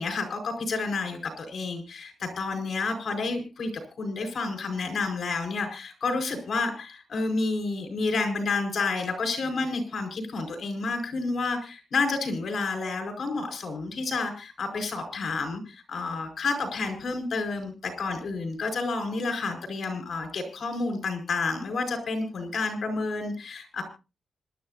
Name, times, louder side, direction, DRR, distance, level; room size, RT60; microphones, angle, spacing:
voice 1, 0.0-23.8, left 3 dB, 50° left, 4 dB, 5.1 m, -30 dB
26.0 x 12.0 x 2.6 m, 0.31 s
wide cardioid pair, 165°, 0 cm